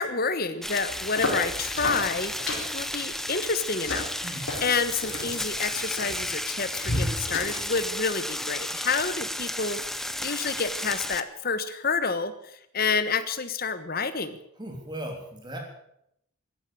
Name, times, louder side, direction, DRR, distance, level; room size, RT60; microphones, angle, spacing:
voice 1, 0.0-2.3 2.7-4.1 4.6-14.4, left 4 dB, 45° left, 12 dB, 1.2 m, -29 dB
sound 1, 0.6-11.2, left 1 dB, ahead, 0.6 m, -33 dB
sound 2, 0.9-7.9, left 1 dB, 60° left, 4.8 m, -34 dB
voice 2, 14.6-15.6, right 1 dB, 20° right, 2 dB, 3.3 m, -37 dB
14.0 x 11.5 x 8.8 m, 0.75 s
head